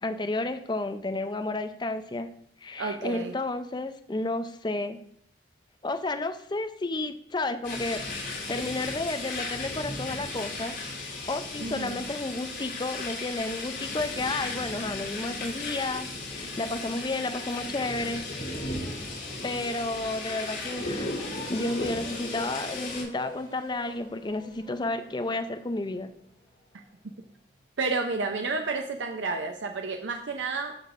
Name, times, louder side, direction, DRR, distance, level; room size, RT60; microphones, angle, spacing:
voice 1, 0.0-2.3 2.6-5.0 5.8-8.0 8.5-10.7 11.3-18.2 18.5-18.6 19.4-21.1 21.5-26.1, left 2 dB, 25° left, 8 dB, 0.5 m, -31 dB
voice 2, 2.8-3.3 11.6-12.1 27.8-30.8, right 3 dB, 75° right, 4 dB, 0.6 m, -31 dB
sound 1, 7.6-23.0, left 2 dB, 65° left, 3.3 m, -35 dB
sound 2, 14.9-27.5, left 1 dB, 45° left, 2.2 m, -48 dB
14.0 x 5.1 x 2.5 m, 0.70 s
head